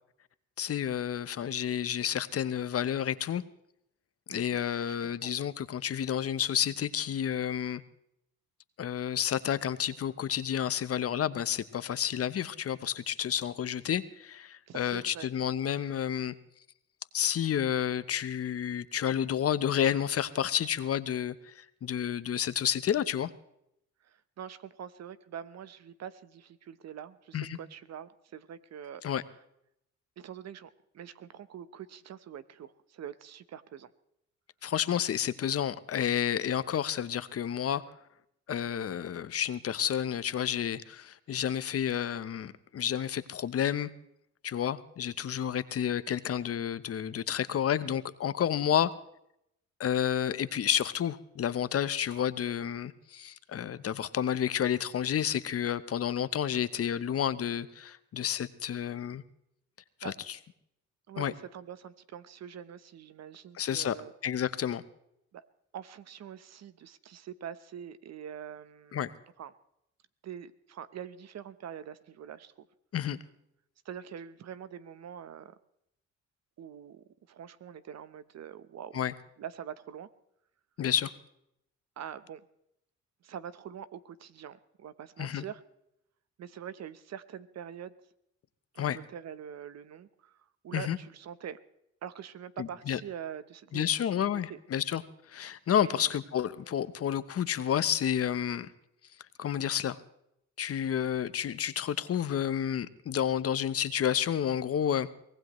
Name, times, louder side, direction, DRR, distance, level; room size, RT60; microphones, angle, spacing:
voice 1, 0.6-3.4 4.3-7.8 8.8-16.3 17.1-23.3 27.3-27.6 29.0-29.2 34.6-37.8 38.5-43.9 44.4-48.9 49.8-59.2 60.0-60.4 61.2-61.3 63.5-63.9 64.2-64.8 68.9-69.1 72.9-73.2 78.9-79.1 80.8-81.1 85.2-85.4 88.8-89.0 90.7-91.0 92.6-93.0 93.7-95.0 95.3-98.7 99.4-100.0 100.6-105.1, left 9 dB, 50° left, 15 dB, 0.9 m, -30 dB
voice 2, 4.3-5.3 14.7-15.3 24.0-29.0 30.2-33.9 60.0-60.4 61.1-64.1 65.3-65.5 65.7-69.0 69.4-69.5 70.2-72.7 73.8-75.5 76.6-79.0 79.4-80.1 82.0-82.4 83.2-85.6 86.4-87.9 88.7-91.6 92.0-93.9 94.1-94.6 95.8-96.1, right 9 dB, 60° right, 14 dB, 1.0 m, -44 dB
24.0 x 18.5 x 3.1 m, 0.78 s
cardioid pair, 90°, 30 cm